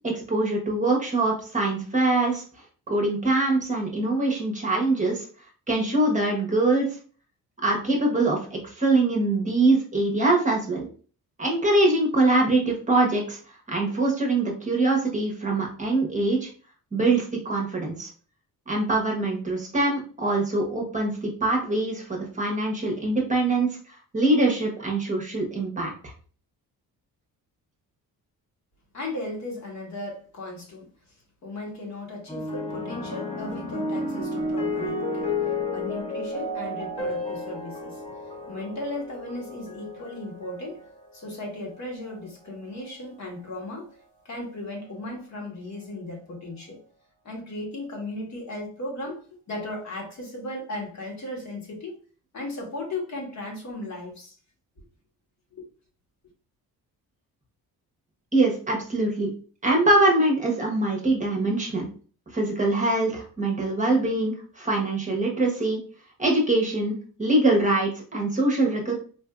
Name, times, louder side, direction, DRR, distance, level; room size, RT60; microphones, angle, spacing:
voice 1, 0.0-2.4 2.9-5.3 5.7-6.9 7.6-10.8 11.4-13.4 13.7-16.5 16.9-18.1 18.7-23.7 24.1-26.1 58.3-59.3 59.6-61.8 62.3-65.8 66.2-69.0, right 2 dB, 20° right, 0 dB, 0.9 m, -23 dB
voice 2, 28.9-30.9 31.4-35.3 35.7-38.0 38.5-40.8 41.1-43.9 44.2-46.8 47.2-52.0 52.3-54.4 55.5-55.6, left 2 dB, 45° left, 0 dB, 1.3 m, -36 dB
sound 1, 32.3-40.9 41.8-42.1, left 2 dB, 15° left, 0.9 m, -32 dB
sound 2, 37.0-41.9, left 2 dB, 90° left, 1.6 m, -40 dB
4.3 x 2.6 x 2.3 m, 0.41 s
cardioid pair, 115°, 37 cm